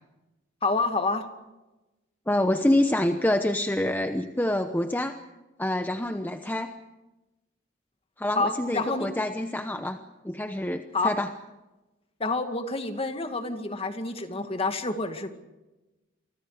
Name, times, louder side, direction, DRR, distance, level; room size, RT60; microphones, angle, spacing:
voice 1, 0.6-1.2 8.4-9.1 10.9-11.1 12.2-15.3, left 3 dB, 30° left, 6 dB, 2.2 m, -28 dB
voice 2, 2.3-5.2 5.6-6.7 8.2-10.0 10.2-11.3, left 1 dB, 10° left, 7 dB, 0.9 m, -26 dB
29.5 x 25.0 x 5.1 m, 1.1 s
head